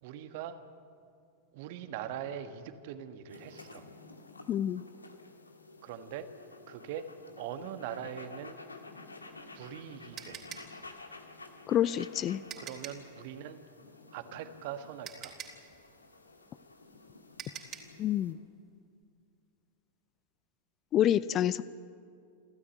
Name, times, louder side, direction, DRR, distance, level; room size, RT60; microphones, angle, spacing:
voice 1, 0.0-0.6 1.5-3.9 5.8-6.3 6.7-7.1 7.4-8.6 9.5-10.4 12.6-13.6 14.1-15.4, right 9 dB, 50° right, 9 dB, 1.6 m, -41 dB
sound 1, 3.3-18.3, left 3 dB, 80° left, 1.8 m, -51 dB
voice 2, 4.5-4.8 11.7-12.4 18.0-18.4 20.9-21.6, left 11 dB, 30° left, 18 dB, 0.6 m, -27 dB
sound 2, 9.3-13.1 14.5-14.6 15.0-18.0, right 8 dB, 30° right, 3.4 m, -46 dB
28.5 x 13.0 x 9.5 m, 2.3 s
figure-of-eight pair, 90°, 0 cm